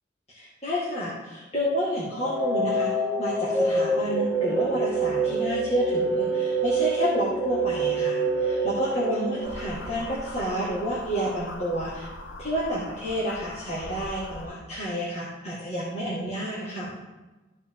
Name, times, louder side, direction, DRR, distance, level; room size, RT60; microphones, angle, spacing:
voice 1, 0.3-2.9 3.2-12.1 12.4-16.9, equal, 35° left, -8 dB, 1.8 m, -29 dB
sound 1, 2.2-10.2, right 2 dB, 15° left, 1.4 m, -26 dB
sound 2, 9.4-14.5, left 1 dB, 75° left, 0.9 m, -41 dB
14.0 x 4.6 x 3.6 m, 1.1 s
head